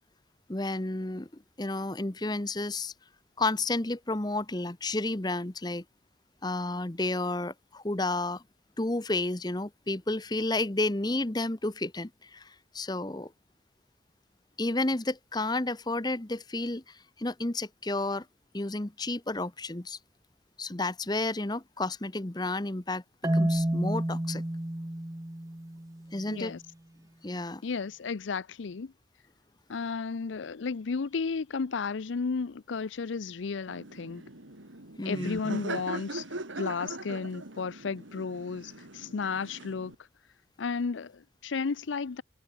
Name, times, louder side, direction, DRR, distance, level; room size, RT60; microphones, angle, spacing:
voice 1, 0.5-1.3 1.6-2.9 3.4-5.8 6.4-8.4 8.8-13.3 14.6-18.2 18.5-20.0 20.6-24.4 26.1-26.5 27.2-27.6 35.0-35.4, left 2 dB, 20° left, 0.9 m, -31 dB
Marimba xylophone, 23.2-26.2, right 1 dB, 15° right, 0.8 m, -30 dB
voice 2, 26.3-26.6 27.6-28.9 29.7-34.2 35.0-36.2 36.6-39.9 40.6-42.2, left 5 dB, 80° left, 0.5 m, -33 dB
Laughter, 33.7-39.9, right 2 dB, 90° right, 3.6 m, -41 dB
head